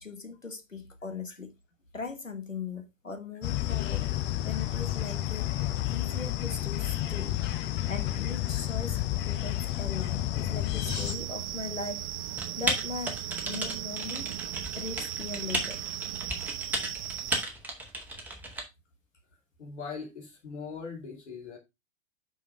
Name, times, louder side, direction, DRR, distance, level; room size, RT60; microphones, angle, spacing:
voice 1, 0.0-1.5 1.9-4.1 4.4-5.5 5.8-7.4 7.9-12.1 12.6-13.2 13.5-14.3 14.8-15.8, left 4 dB, 90° left, 1.4 m, -39 dB
sound 1, 3.4-11.2, left 14 dB, 30° left, 0.9 m, -30 dB
sound 2, 10.8-17.4, right 11 dB, 50° right, 0.6 m, -37 dB
Typing, 12.4-18.6, right 1 dB, 5° right, 1.9 m, -34 dB
voice 2, 19.6-21.6, left 5 dB, 65° left, 2.9 m, -40 dB
6.0 x 6.0 x 4.7 m
figure-of-eight pair, 100°, 38 cm